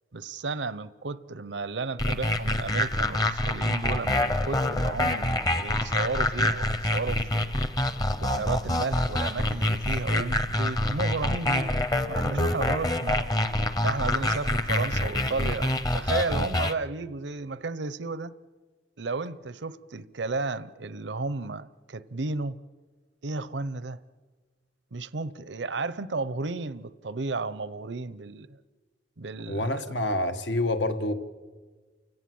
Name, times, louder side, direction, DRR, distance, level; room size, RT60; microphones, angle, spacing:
voice 1, 0.1-7.5 8.2-13.3 13.8-18.3 19.0-22.6 23.2-24.0 24.9-28.6 29.2-29.9, right 3 dB, 75° right, 0.8 m, -33 dB
sound 1, 2.0-16.7, left 1 dB, 20° left, 0.9 m, -26 dB
voice 2, 29.5-31.1, left 1 dB, 80° left, 1.4 m, -27 dB
29.5 x 17.0 x 7.8 m
head